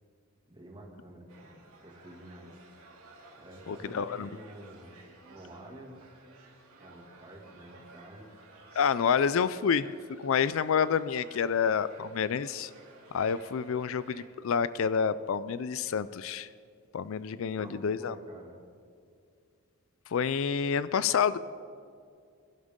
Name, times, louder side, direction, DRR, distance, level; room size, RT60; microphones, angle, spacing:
voice 1, 0.5-2.6 3.4-5.0 5.3-6.1 6.8-8.3 17.6-18.6, right 1 dB, 25° right, -1 dB, 2.4 m, -49 dB
sound 1, 1.3-14.3, right 3 dB, 90° right, 2.9 m, -55 dB
voice 2, 3.7-4.3 8.8-12.7 13.1-16.5 16.9-18.1 20.1-21.4, left 7 dB, 65° left, 16 dB, 0.4 m, -28 dB
22.0 x 12.0 x 3.7 m, 2.3 s
head